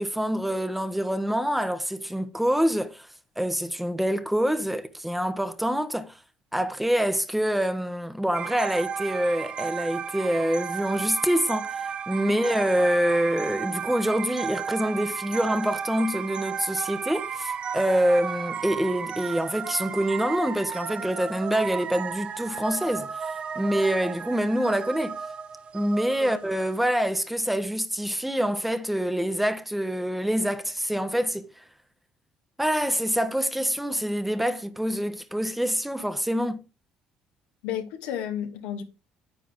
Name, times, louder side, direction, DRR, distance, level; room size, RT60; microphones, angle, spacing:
voice 1, 0.0-3.1 3.4-6.1 6.5-25.2 25.7-31.5 32.6-36.6, equal, 5° right, 1.2 m, -26 dB
sound 1, 8.3-26.7, right 7 dB, 45° right, 1.0 m, -34 dB
voice 2, 37.6-38.8, left 10 dB, 85° left, 2.0 m, -32 dB
9.9 x 8.9 x 3.7 m
supercardioid pair, 80°, 3 cm